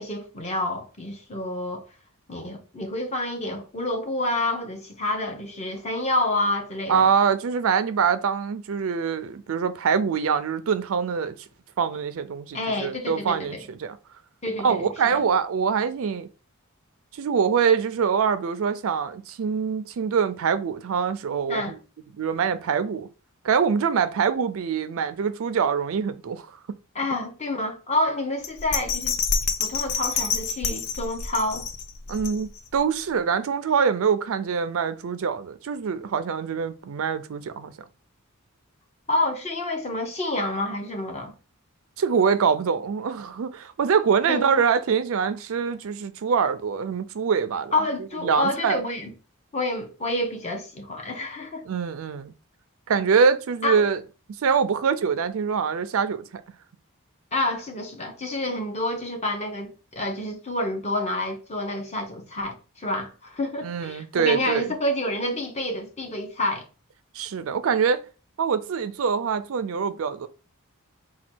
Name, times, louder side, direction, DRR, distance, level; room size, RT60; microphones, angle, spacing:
voice 1, 0.0-1.8 2.3-7.1 12.5-13.6 14.4-15.2 21.5-21.8 26.9-29.2 29.6-31.7 39.1-41.3 44.3-44.6 47.7-49.1 49.5-51.6 53.6-53.7 57.3-66.6, left 1 dB, 30° left, 0.9 m, -28 dB
voice 2, 6.9-11.4 11.8-14.0 14.6-16.3 17.1-21.8 22.2-23.1 23.4-26.6 32.1-37.7 42.0-47.7 48.2-48.8 51.7-52.3 52.9-54.0 54.4-56.4 63.6-64.7 67.1-68.0 68.4-70.3, right 6 dB, 70° right, 0.4 m, -24 dB
Bell, 28.4-32.8 33.2-33.3, left 5 dB, 80° left, 0.6 m, -28 dB
4.3 x 2.3 x 4.4 m
head